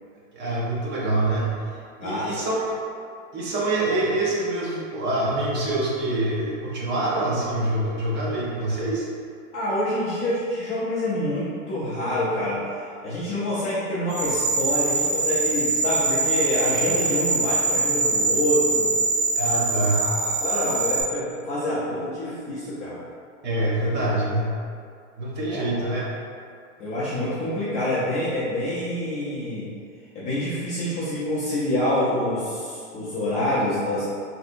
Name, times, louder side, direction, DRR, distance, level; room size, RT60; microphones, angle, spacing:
voice 1, 0.3-1.6 2.0-2.6 3.3-9.1 19.4-20.1 23.4-24.5 25.2-26.0, right 2 dB, 30° right, -5 dB, 0.6 m, -25 dB
voice 2, 2.0-2.6 9.5-12.6 13.0-18.9 19.8-23.0 25.5-25.8 26.8-29.7 30.1-34.0, left 1 dB, 20° left, -10 dB, 0.4 m, -27 dB
sound 1, 14.1-21.0, right 3 dB, 85° right, 1.2 m, -23 dB
3.3 x 2.8 x 2.4 m, 2.3 s
hypercardioid pair, 130°, 38 cm